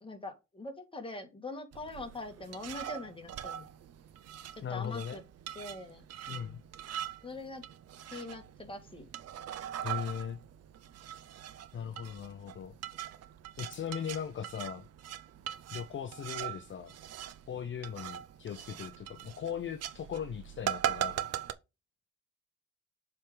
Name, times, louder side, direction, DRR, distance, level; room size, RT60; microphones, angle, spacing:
voice 1, 0.0-3.7 4.5-5.2 5.6-6.6 7.2-7.6 8.1-9.1, left 2 dB, 15° left, 1.6 m, -43 dB
sound 1, 1.7-21.5, right 10 dB, 55° right, 0.6 m, -41 dB
voice 2, 4.6-5.2 6.3-6.6 9.8-10.4 11.7-12.8 13.6-14.9 15.7-16.9 17.5-21.3, left 8 dB, 40° left, 0.6 m, -39 dB
7.4 x 3.6 x 5.0 m
cardioid pair, 90°, 30 cm